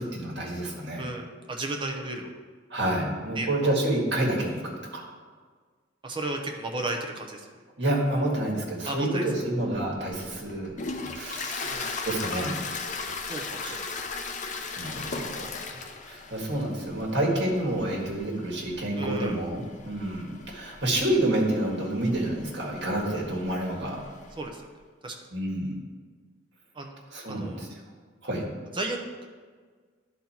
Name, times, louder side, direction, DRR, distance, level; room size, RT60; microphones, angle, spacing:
voice 1, 0.0-1.0 2.7-5.0 7.8-10.8 11.1-12.5 14.8-24.0 25.3-25.8 27.1-27.7 28.2-28.5, right 1 dB, 65° right, -1 dB, 1.9 m, -29 dB
voice 2, 1.0-2.3 3.3-3.8 6.0-7.5 8.9-9.2 11.6-12.0 13.3-14.0 15.3-15.5 19.0-19.4 24.4-24.6 25.0-25.2 26.7-26.9 27.3-27.6 28.7-29.3, right 2 dB, 25° right, 2 dB, 0.9 m, -34 dB
Toilet flush, 9.7-24.5, left 4 dB, 40° left, 0.6 m, -38 dB
11.0 x 4.1 x 4.4 m, 1.5 s
head